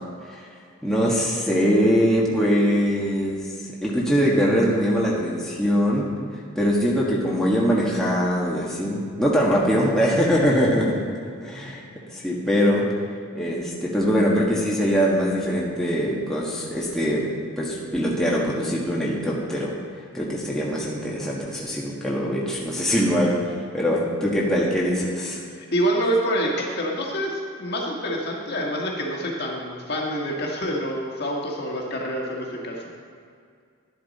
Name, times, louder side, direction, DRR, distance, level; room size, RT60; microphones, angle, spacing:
voice 1, 0.8-3.4 3.8-6.1 6.5-11.0 11.4-11.8 12.1-12.8 13.3-17.3 17.6-19.7 20.1-23.3 23.7-25.4, equal, ahead, -6 dB, 1.5 m, -22 dB
voice 2, 25.6-32.8, equal, 45° left, -2 dB, 1.7 m, -26 dB
12.0 x 10.5 x 4.2 m, 2.2 s
head